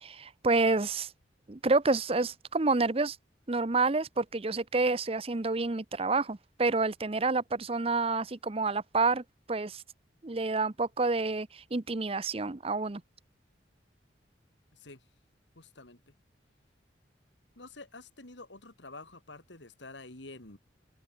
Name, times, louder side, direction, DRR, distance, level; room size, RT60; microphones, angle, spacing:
voice 1, 0.0-1.1 1.5-3.2 3.5-9.8 10.2-13.0, right 3 dB, 30° right, 0.7 m, -29 dB
voice 2, 15.5-16.1 17.5-20.6, left 2 dB, 75° left, 3.2 m, -48 dB
open air
head